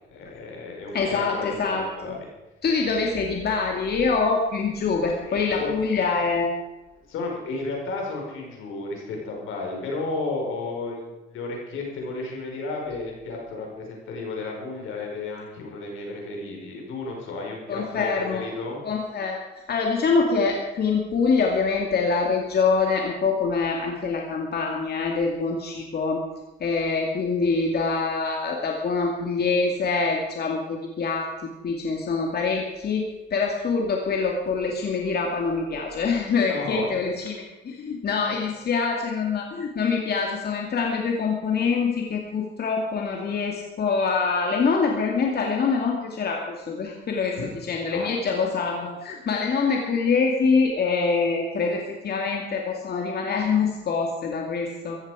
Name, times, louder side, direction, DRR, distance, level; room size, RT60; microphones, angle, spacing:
voice 1, 0.1-2.2 5.3-5.7 7.1-18.8 36.5-36.9 38.3-38.4 47.9-48.1, left 3 dB, 85° left, 0 dB, 5.0 m, -33 dB
voice 2, 0.9-2.1 2.6-6.5 17.7-18.4 18.8-19.4 19.7-26.2 26.6-31.3 31.6-47.4 47.7-55.0, left 4 dB, 55° left, 0 dB, 2.4 m, -25 dB
15.0 x 14.5 x 5.0 m, 1.0 s
cardioid pair, 90°, 20 cm